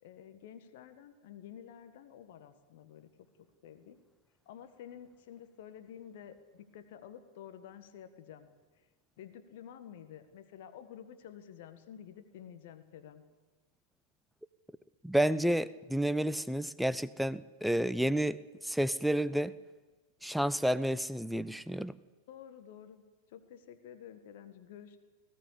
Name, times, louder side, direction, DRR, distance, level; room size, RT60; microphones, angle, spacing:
voice 1, 0.0-3.1 3.6-4.0 4.5-8.5 9.2-13.2 22.3-23.0 23.3-25.0, left 9 dB, 55° left, 10 dB, 1.6 m, -50 dB
voice 2, 15.0-19.5 20.2-21.9, right 1 dB, ahead, 16 dB, 0.6 m, -30 dB
19.5 x 16.0 x 8.5 m, 1.3 s
figure-of-eight pair, 90°, 0 cm